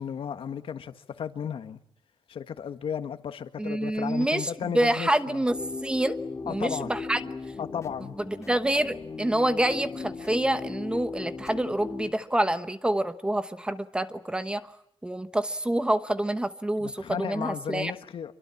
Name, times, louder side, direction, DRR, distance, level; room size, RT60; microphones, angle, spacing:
voice 1, 0.0-1.8 2.3-5.4 6.5-6.9 7.6-8.2 16.8-18.3, left 8 dB, 65° left, 1.7 m, -34 dB
voice 2, 3.6-6.2 6.4-7.2 8.3-14.7 15.0-17.9, right 1 dB, 10° right, 1.1 m, -27 dB
sound 1, 5.5-12.1, left 4 dB, 30° left, 2.8 m, -38 dB
26.5 x 24.0 x 8.6 m
wide cardioid pair, 170°, 10 cm